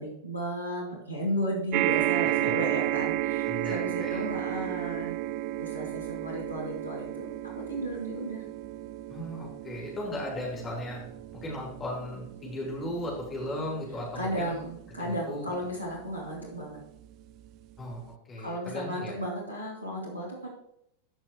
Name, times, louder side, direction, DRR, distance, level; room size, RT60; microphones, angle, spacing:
voice 1, 0.0-5.2 5.6-7.3 7.5-8.5 14.1-16.8 18.4-20.5, equal, 85° right, -3 dB, 2.6 m, -34 dB
sound 1, 1.7-16.3 17.0-17.1 17.4-17.5, right 15 dB, 40° right, 0.4 m, -33 dB
voice 2, 3.5-4.3 9.1-11.0 11.3-14.5 15.0-15.5 17.8-19.1, left 1 dB, 20° left, -2 dB, 3.6 m, -36 dB
15.0 x 5.8 x 3.1 m, 0.76 s
figure-of-eight pair, 90°, 0 cm